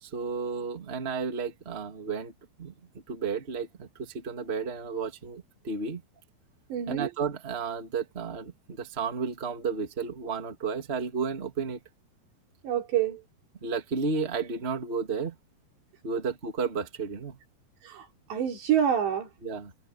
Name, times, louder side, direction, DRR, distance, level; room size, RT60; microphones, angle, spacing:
voice 1, 0.0-2.3 2.6-2.7 3.1-6.0 6.9-11.8 13.6-15.4 16.0-17.4 19.4-19.7, right 5 dB, 20° right, 1.9 m, -32 dB
voice 2, 6.7-7.1 12.6-13.2 17.8-18.1 18.3-19.3, right 9 dB, 85° right, 6.1 m, -27 dB
omnidirectional pair, 4.9 m